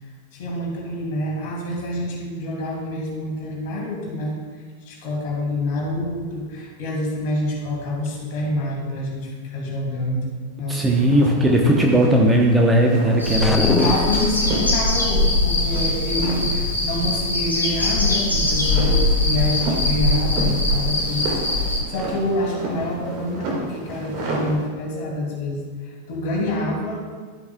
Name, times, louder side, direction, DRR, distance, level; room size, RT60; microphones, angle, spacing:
voice 1, 0.3-4.4 4.8-10.3 10.6-11.6 13.6-27.0, left 1 dB, 50° left, -2 dB, 2.5 m, -27 dB
voice 2, 10.7-13.7, right 1 dB, 10° right, 0 dB, 0.9 m, -17 dB
Cotton Flapping, 10.8-24.7, right 2 dB, 45° right, 1.8 m, -33 dB
sound 1, 13.2-21.8, left 2 dB, 80° left, 1.7 m, -21 dB
sound 2, 13.4-14.5, left 4 dB, 15° left, 0.3 m, -23 dB
12.5 x 8.4 x 2.3 m, 1.5 s
figure-of-eight pair, 90°, 0 cm